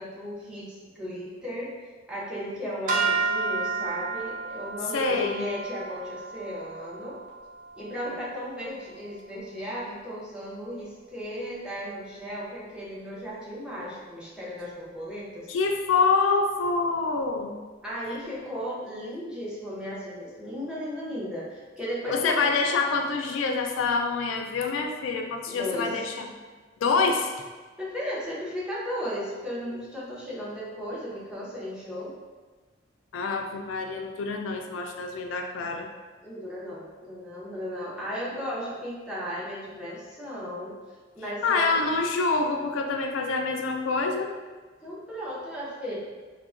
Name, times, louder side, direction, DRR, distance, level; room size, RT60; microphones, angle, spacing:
voice 1, 0.0-1.7 2.1-7.2 7.8-15.5 17.8-22.5 25.5-25.9 27.8-32.1 36.2-40.7 41.1-41.9 44.8-46.0, equal, 5° right, -7 dB, 0.6 m, -35 dB
sound 1, 2.9-9.2, right 4 dB, 45° right, 0.4 m, -32 dB
voice 2, 4.9-5.5 15.5-17.6 22.1-26.3 26.8-27.3 33.1-35.9 41.4-44.3, left 4 dB, 80° left, 4 dB, 0.3 m, -26 dB
3.6 x 2.1 x 2.4 m, 1.4 s
head